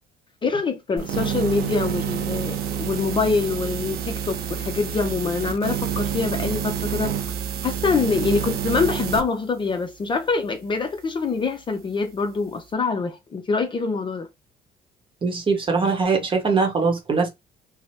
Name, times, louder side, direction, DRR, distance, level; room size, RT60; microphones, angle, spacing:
voice 1, 0.4-7.2 7.6-14.3, left 4 dB, 30° left, 0.5 m, -25 dB
sound 1, 1.0-9.2, right 8 dB, 70° right, 0.6 m, -28 dB
voice 2, 15.2-17.3, right 4 dB, 30° right, 0.9 m, -21 dB
2.7 x 2.0 x 3.1 m
cardioid pair, 110°, 17 cm